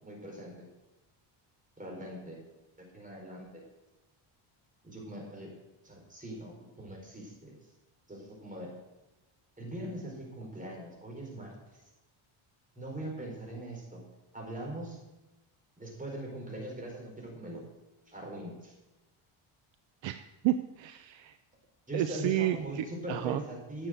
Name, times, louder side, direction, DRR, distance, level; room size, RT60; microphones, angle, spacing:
voice 1, 0.0-0.7 1.8-2.4 2.8-3.5 4.8-5.5 5.8-7.6 8.1-8.7 9.6-11.6 12.8-13.8 14.3-15.0 15.8-17.6 18.1-18.7 21.9-23.9, right 1 dB, 15° right, -1 dB, 4.2 m, -41 dB
voice 2, 20.0-21.3 21.9-23.4, right 13 dB, 65° right, 11 dB, 0.6 m, -31 dB
10.0 x 7.2 x 7.8 m, 1.0 s
cardioid pair, 110°, 50 cm